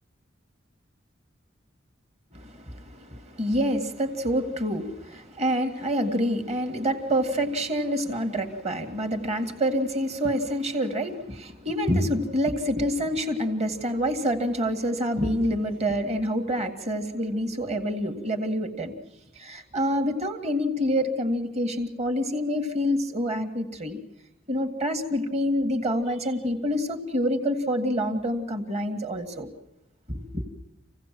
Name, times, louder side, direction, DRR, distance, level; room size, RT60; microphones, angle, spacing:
voice 1, 2.3-18.9 19.4-24.0 24.5-29.5 30.1-30.4, equal, 35° right, 6 dB, 2.0 m, -27 dB
27.0 x 16.5 x 7.6 m, 0.88 s
head